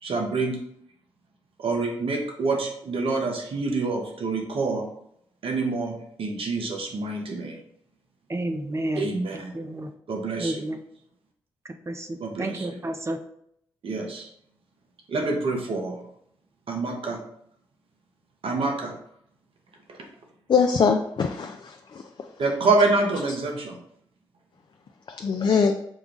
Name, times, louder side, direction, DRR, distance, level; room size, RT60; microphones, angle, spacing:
voice 1, 0.0-0.6 1.6-4.8 5.4-7.6 9.0-9.6 10.1-10.6 12.2-12.8 13.8-14.3 15.1-16.0 16.7-17.2 18.4-18.9 19.9-20.0 22.4-23.8, right 3 dB, 65° right, 2 dB, 1.0 m, -26 dB
voice 2, 8.3-9.1 9.5-9.9 10.4-10.8 11.9-12.1 12.4-13.2, right 1 dB, 25° right, 6 dB, 0.6 m, -30 dB
voice 3, 20.5-22.0 25.1-25.7, left 5 dB, 50° left, 5 dB, 0.4 m, -22 dB
5.1 x 2.3 x 3.8 m, 0.72 s
supercardioid pair, 45°, 10 cm